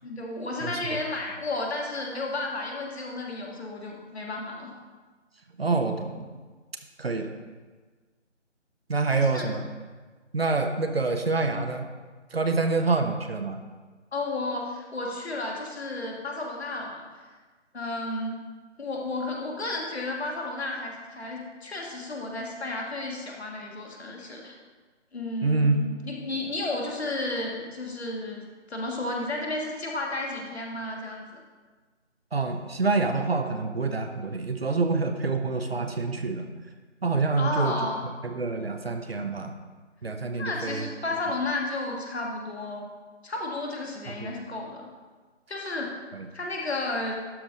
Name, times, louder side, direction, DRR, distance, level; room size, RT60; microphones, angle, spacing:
voice 1, 0.0-4.7 9.0-9.5 11.4-11.6 14.1-17.0 17.7-18.4 18.8-24.5 25.1-28.4 28.7-31.4 37.4-38.1 40.4-42.9 43.2-44.8 45.5-45.9 46.3-47.2, left 2 dB, 60° left, 0 dB, 1.7 m, -32 dB
voice 2, 0.6-1.0 5.6-6.3 7.0-7.3 8.9-9.7 10.3-11.9 12.3-13.6 25.4-25.9 32.3-36.5 37.0-37.7 38.2-39.5 40.0-40.9 44.1-44.3 46.1-46.3, right 3 dB, 55° right, 6 dB, 0.8 m, -26 dB
12.0 x 4.9 x 3.9 m, 1.4 s
figure-of-eight pair, 170°, 37 cm